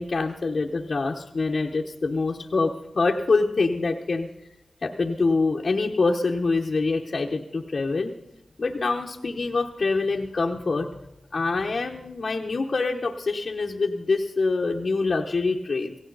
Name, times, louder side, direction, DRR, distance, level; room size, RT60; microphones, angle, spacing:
voice 1, 0.0-4.3 4.8-8.1 8.6-10.9 11.3-16.0, left 3 dB, 60° left, 0 dB, 1.0 m, -25 dB
17.0 x 16.0 x 4.0 m, 0.91 s
cardioid pair, 50°, 0 cm